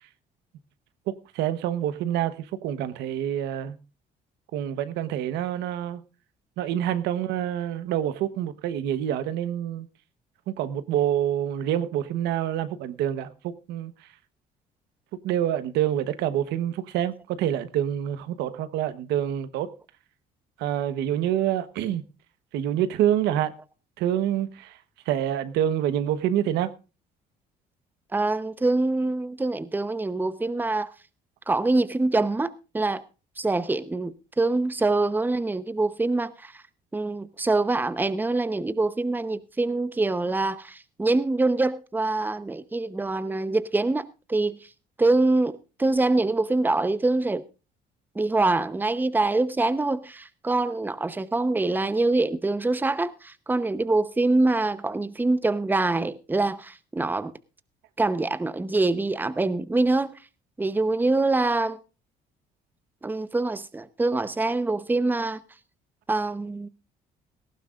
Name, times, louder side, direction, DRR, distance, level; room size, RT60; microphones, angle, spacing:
voice 1, 1.1-3.8 4.5-6.0 6.6-9.9 10.5-13.9 15.2-19.7 20.6-22.0 22.5-23.5 24.0-24.8 25.1-26.7, right 11 dB, 85° right, 1.1 m, -27 dB
voice 2, 28.1-30.9 31.5-33.0 33.4-36.6 36.9-44.6 45.0-47.4 48.1-57.3 58.0-60.1 60.6-61.8 63.0-65.4 66.1-66.7, right 2 dB, 10° right, 0.8 m, -25 dB
18.0 x 15.0 x 2.5 m
cardioid pair, 110°, 17 cm